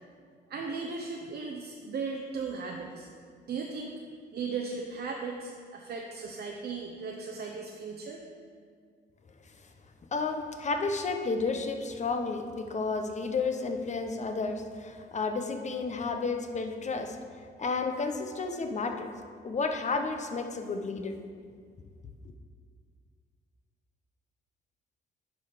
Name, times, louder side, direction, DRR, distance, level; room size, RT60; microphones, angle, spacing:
voice 1, 0.5-3.1 3.5-4.0 4.3-8.2, right 4 dB, 55° right, 1 dB, 0.7 m, -37 dB
voice 2, 10.1-17.2 17.6-19.1 19.4-21.1, left 4 dB, 35° left, 5 dB, 0.8 m, -31 dB
11.0 x 4.0 x 5.0 m, 2.1 s
cardioid pair, 90°, 20 cm